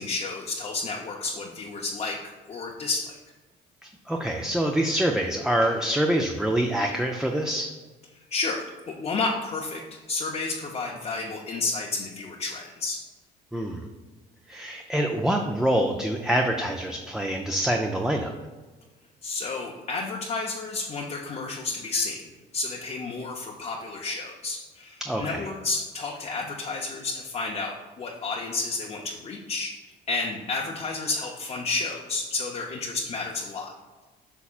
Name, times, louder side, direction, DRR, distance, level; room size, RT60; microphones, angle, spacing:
voice 1, 0.0-3.2 8.1-13.0 19.2-33.7, left 3 dB, 40° left, -2 dB, 0.7 m, -31 dB
voice 2, 4.1-7.7 13.5-13.9 14.5-18.3 25.0-25.5, right 1 dB, 5° right, 2 dB, 0.5 m, -25 dB
8.3 x 5.7 x 2.4 m, 1.3 s
cardioid pair, 110°, 17 cm